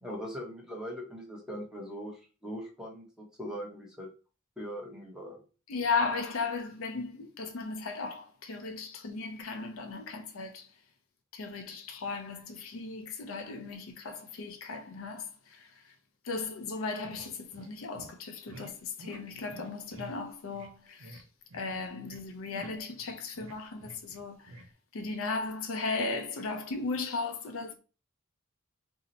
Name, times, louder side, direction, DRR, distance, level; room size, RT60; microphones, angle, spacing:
voice 1, 0.0-4.1 4.6-5.4, equal, 5° right, 0.8 m, -41 dB
voice 2, 5.7-10.7 11.3-15.7 16.2-21.2 21.5-24.6 24.9-27.7, left 4 dB, 75° left, 0.5 m, -36 dB
sound 1, 16.9-17.7 17.9-18.1 18.5-18.7 19.0-19.2 19.5-20.2 20.5-20.7 21.0-21.2 21.5-22.2 22.5-24.2 24.5-24.7, right 1 dB, 75° right, 0.6 m, -48 dB
2.7 x 2.1 x 3.9 m
head